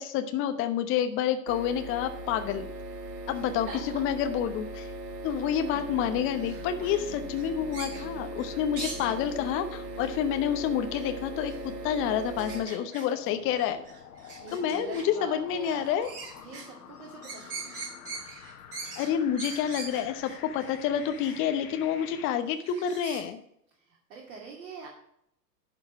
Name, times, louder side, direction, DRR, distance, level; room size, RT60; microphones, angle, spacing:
voice 1, 0.0-2.7 3.3-3.7 3.9-4.9 5.2-13.8 14.5-16.1 19.0-23.4, left 9 dB, 25° left, 8 dB, 0.8 m, -29 dB
sound 1, 1.5-12.6, right 2 dB, 75° right, 1.2 m, -39 dB
voice 2, 3.3-4.0 5.7-5.8 6.8-7.1 14.2-15.9 16.4-17.7 23.8-24.9, right 4 dB, 55° right, -2 dB, 2.3 m, -44 dB
sound 2, 5.7-22.3, left 8 dB, 65° left, 1.4 m, -48 dB
sound 3, 5.7-7.0 7.4-9.1 9.9-10.4 10.9-11.0 11.4-11.6 12.4-13.3 13.5-15.1 15.6-16.7 17.0-21.4 21.8-22.0 22.5-23.2, right 4 dB, 30° right, 3.7 m, -42 dB
11.0 x 4.7 x 6.1 m, 0.72 s
figure-of-eight pair, 105°, 49 cm